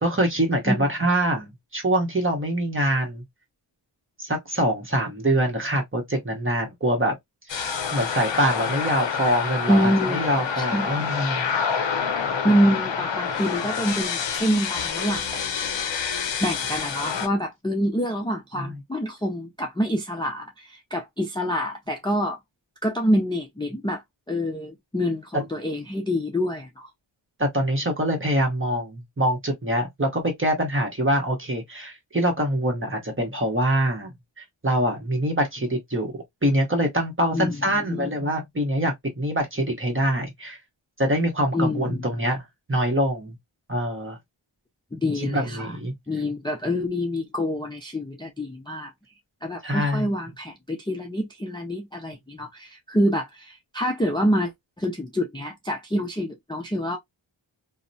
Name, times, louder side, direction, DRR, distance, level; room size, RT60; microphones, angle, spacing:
voice 1, 0.0-3.2 4.2-7.1 7.9-11.5 18.5-18.8 25.3-25.5 27.4-36.1 36.4-40.6 41.0-42.4 42.7-43.4 43.7-44.2 45.1-45.9 49.6-50.1, right 1 dB, 25° right, 0.9 m, -24 dB
sound 1, 7.5-17.3, left 6 dB, 60° left, 0.6 m, -27 dB
voice 2, 9.7-10.2 10.6-11.2 12.2-15.4 16.4-22.4 22.8-24.0 24.3-26.9 37.3-38.1 41.5-42.0 44.9-45.8 46.1-48.9 49.4-54.5 54.8-57.0, equal, 10° left, 0.4 m, -26 dB
2.8 x 2.1 x 2.6 m
wide cardioid pair, 75°, 50 cm